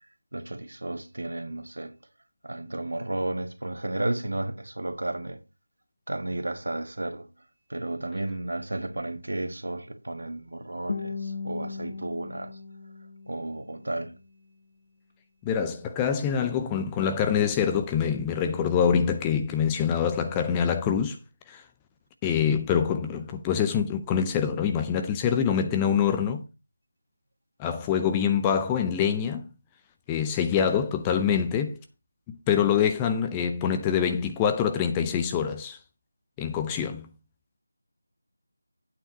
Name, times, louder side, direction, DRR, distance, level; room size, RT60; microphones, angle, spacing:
voice 1, 0.3-1.9 2.4-5.4 6.1-7.3 7.7-12.6 13.3-14.1, right 1 dB, 65° right, 1.4 m, -33 dB
Guitar, 10.9-13.9, left 4 dB, 45° left, 1.0 m, -37 dB
voice 2, 15.4-21.2 21.5-21.6 22.2-26.4 27.6-29.5 30.1-31.8 32.3-35.8 36.4-37.1, left 8 dB, 10° left, 0.5 m, -25 dB
8.9 x 5.6 x 5.2 m
figure-of-eight pair, 165°, 0 cm